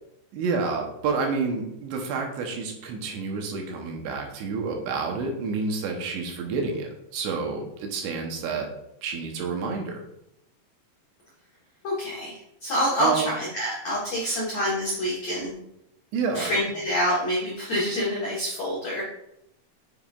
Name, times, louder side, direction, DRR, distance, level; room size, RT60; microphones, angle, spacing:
voice 1, 0.3-8.7 9.0-10.0 13.0-13.3 14.2-14.4 16.1-16.5, right 4 dB, 75° right, 2 dB, 3.1 m, -29 dB
voice 2, 11.8-15.5 16.3-19.0, equal, 85° left, -5 dB, 1.4 m, -27 dB
7.7 x 7.0 x 2.4 m, 0.80 s
omnidirectional pair, 5.4 m